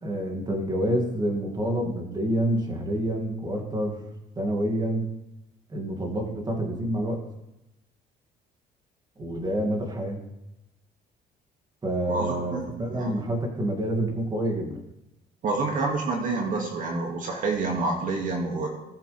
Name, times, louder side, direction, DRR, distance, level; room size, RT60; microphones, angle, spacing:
voice 1, 0.0-4.0 4.4-5.1 5.7-7.2 9.2-10.2 11.8-14.8, right 1 dB, 25° right, 1 dB, 2.4 m, -28 dB
voice 2, 12.1-13.3 15.4-18.7, right 3 dB, 50° right, 0 dB, 2.2 m, -28 dB
19.0 x 7.3 x 3.4 m, 0.92 s
cardioid pair, 110°, 17 cm